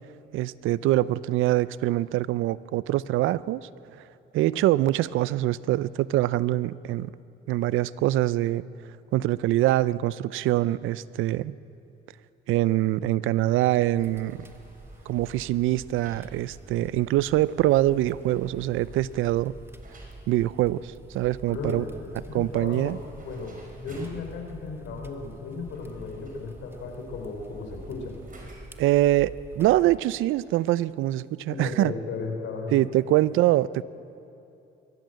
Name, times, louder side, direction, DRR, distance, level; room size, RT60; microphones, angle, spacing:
voice 1, 0.3-3.6 4.3-7.1 7.5-8.6 9.1-11.5 12.5-14.5 15.1-19.5 20.3-21.8 22.3-23.0 28.8-31.9 32.7-33.8, right 15 dB, 85° right, 19 dB, 0.5 m, -24 dB
sound 1, 13.8-28.9, right 2 dB, 45° right, 5.0 m, -54 dB
sound 2, 14.0-30.0, right 2 dB, 10° right, 1.5 m, -47 dB
voice 2, 21.5-23.0 23.2-28.1 31.5-32.8, left 4 dB, 80° left, 3 dB, 3.7 m, -35 dB
22.5 x 17.0 x 7.7 m, 2.8 s
cardioid pair, 90°, 20 cm